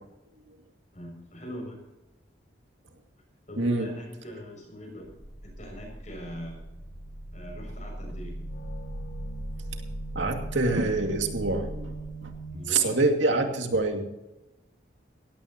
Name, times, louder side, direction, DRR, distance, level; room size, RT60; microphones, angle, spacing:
voice 1, 0.9-1.8 3.5-5.1 5.4-6.6 7.3-8.4 12.5-12.9, equal, 40° left, 1 dB, 6.6 m, -41 dB
voice 2, 3.6-3.9 10.2-12.3 12.7-14.0, right 3 dB, 85° right, 4 dB, 2.3 m, -26 dB
sound 1, 5.0-12.6, right 1 dB, 65° left, 2.1 m, -38 dB
17.5 x 16.5 x 3.0 m, 0.99 s
head